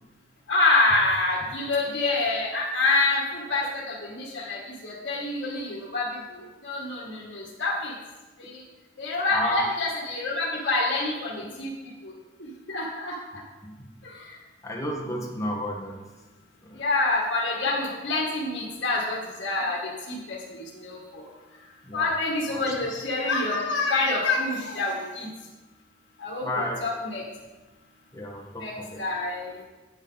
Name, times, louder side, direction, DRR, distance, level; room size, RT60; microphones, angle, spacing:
voice 1, 0.5-6.1 6.6-7.9 9.0-11.7 12.7-13.1 16.8-19.8 20.1-21.2 21.9-25.3 26.2-26.5 26.8-27.2 28.6-28.7 29.0-29.5, left 3 dB, 70° left, -4 dB, 1.9 m, -26 dB
voice 2, 9.3-9.7 13.6-13.9 14.6-16.0 16.6-16.8 21.8-22.1 22.5-22.6 26.4-26.8 28.1-29.0, left 1 dB, 15° left, -2 dB, 1.6 m, -32 dB
9.8 x 8.4 x 4.0 m, 1.2 s
head